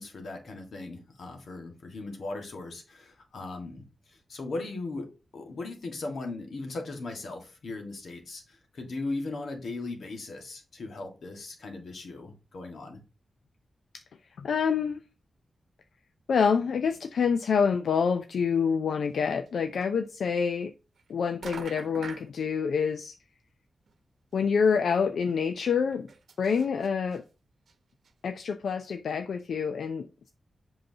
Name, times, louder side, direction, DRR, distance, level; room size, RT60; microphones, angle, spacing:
voice 1, 0.0-13.0, left 2 dB, 65° left, 1.6 m, -38 dB
voice 2, 14.4-15.0 16.3-20.7 21.1-23.2 24.3-26.1 26.4-27.2 28.2-30.3, left 6 dB, 85° left, 0.4 m, -27 dB
sound 1, 19.5-19.6 19.8-19.9 21.0-21.1 21.4-22.3 23.9-24.0 24.3-24.4 24.7-24.8 25.7-27.2 27.7-27.8 28.0-28.1, right 5 dB, 70° right, 0.9 m, -44 dB
7.8 x 5.6 x 2.8 m
wide cardioid pair, 145°, 0 cm